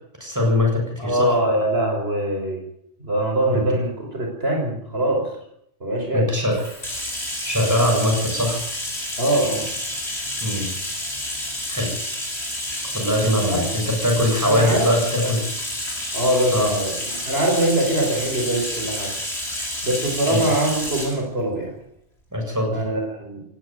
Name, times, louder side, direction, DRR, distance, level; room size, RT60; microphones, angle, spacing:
voice 1, 0.2-1.3 3.5-3.6 6.1-6.6 7.4-8.6 10.4-10.7 11.7-11.9 12.9-15.4 16.5-16.7 20.3-20.4 22.3-22.8, left 1 dB, 15° right, 0 dB, 7.4 m, -21 dB
voice 2, 1.0-2.6 3.0-5.3 5.8-6.3 9.2-9.7 13.5-13.7 14.4-14.9 15.2-15.4 16.1-19.1 19.8-21.7 22.7-23.4, right 1 dB, 55° right, 0 dB, 5.4 m, -23 dB
Bathtub (filling or washing), 6.5-21.2, left 1 dB, 65° left, 8.2 m, -29 dB
18.5 x 15.5 x 9.3 m, 0.72 s
omnidirectional pair, 1.2 m